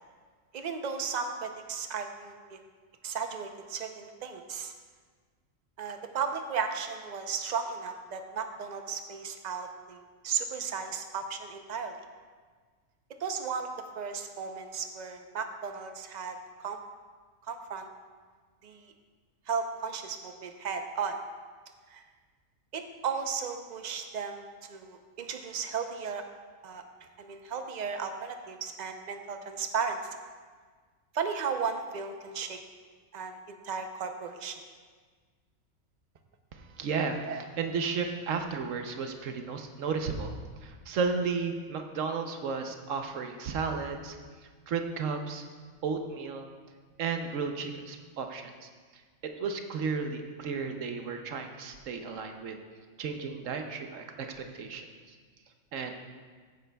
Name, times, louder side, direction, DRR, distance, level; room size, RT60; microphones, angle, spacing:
voice 1, 0.5-2.6 3.0-4.7 5.8-10.0 10.2-12.0 13.2-13.7 14.0-16.8 17.5-17.9 18.6-18.9 19.5-21.2 21.9-22.0 22.7-26.2 26.6-26.8 27.2-30.0 31.1-32.6 33.1-34.6 37.3-37.4, right 6 dB, 45° right, 6 dB, 0.7 m, -35 dB
voice 2, 36.5-37.2 37.6-40.3 40.6-44.2 44.7-45.4 45.8-46.5 47.0-48.7 49.2-52.6 53.0-55.2 55.7-56.0, right 5 dB, 75° right, 5 dB, 1.1 m, -33 dB
14.5 x 9.2 x 2.3 m, 1.5 s
omnidirectional pair, 1.4 m